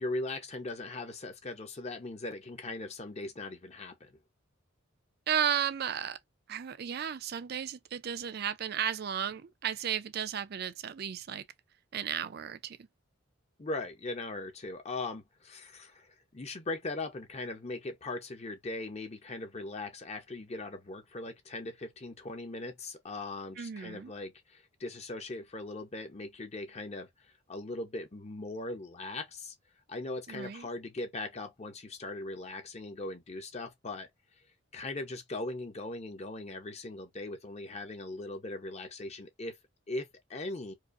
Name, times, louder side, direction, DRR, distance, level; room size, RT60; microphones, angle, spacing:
voice 1, 0.0-4.2 13.6-29.5 29.9-34.1 34.7-39.6 39.9-40.7, left 2 dB, 35° left, 0.7 m, -39 dB
voice 2, 5.3-6.2 6.5-11.4 11.9-12.8 23.6-24.1 30.3-30.7, right 9 dB, 50° right, 0.4 m, -34 dB
4.7 x 2.5 x 2.4 m
head